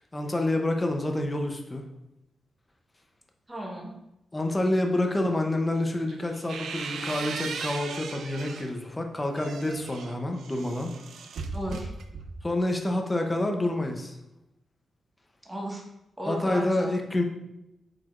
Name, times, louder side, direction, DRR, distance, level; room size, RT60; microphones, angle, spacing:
voice 1, 0.1-1.9 4.3-10.9 12.4-14.2 16.3-17.2, left 1 dB, 15° left, 3 dB, 0.7 m, -28 dB
voice 2, 3.5-3.9 11.5-11.9 15.4-15.8 16.2-16.9, right 1 dB, 10° right, -2 dB, 1.1 m, -34 dB
sound 1, 6.1-8.7 9.2-12.5, right 5 dB, 75° right, 0.5 m, -38 dB
7.9 x 4.8 x 2.5 m, 0.89 s
wide cardioid pair, 165°, 0 cm